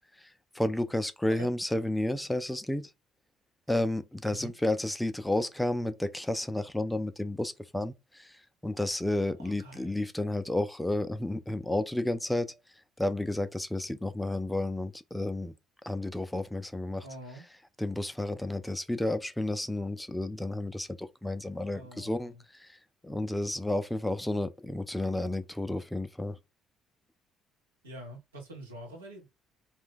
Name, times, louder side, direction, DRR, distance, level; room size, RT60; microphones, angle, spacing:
voice 1, 0.5-2.8 3.7-8.3 8.6-12.5 13.0-15.5 15.8-17.0 17.8-22.3 22.6-22.8 23.0-26.4, left 1 dB, 5° left, 0.4 m, -31 dB
voice 2, 9.3-10.0 17.0-17.5 21.7-22.4 27.8-29.3, right 1 dB, 80° right, 0.8 m, -45 dB
2.5 x 2.2 x 3.5 m
figure-of-eight pair, 50°, 0 cm